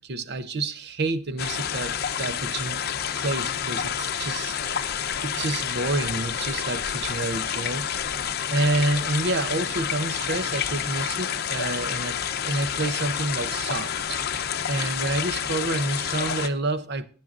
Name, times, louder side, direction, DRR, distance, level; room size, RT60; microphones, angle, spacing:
voice 1, 0.0-2.8 3.2-7.9 8.1-8.2 8.5-17.1, right 2 dB, 55° right, 0.8 m, -29 dB
sound 1, 1.4-16.5, left 8 dB, 50° left, 0.7 m, -29 dB
18.0 x 8.9 x 2.5 m
head